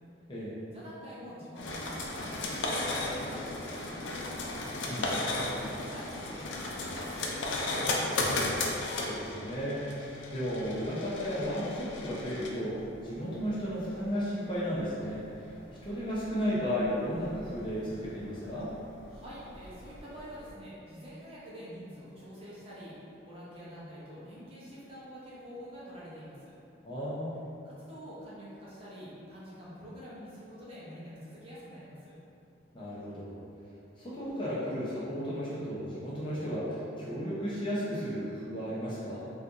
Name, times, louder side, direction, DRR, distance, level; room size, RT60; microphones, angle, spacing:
voice 1, 0.7-4.4 5.2-8.2 19.1-23.0 23.2-26.5 27.6-32.1, equal, 30° right, -8 dB, 0.6 m, -46 dB
sound 1, 1.6-20.5, left 2 dB, 75° left, 0.4 m, -36 dB
voice 2, 4.9-5.2 9.0-12.8 13.0-15.5 15.8-18.7 26.8-27.4 32.7-33.4 34.0-39.2, equal, 25° left, -8 dB, 0.6 m, -34 dB
4.3 x 2.4 x 2.5 m, 2.7 s
head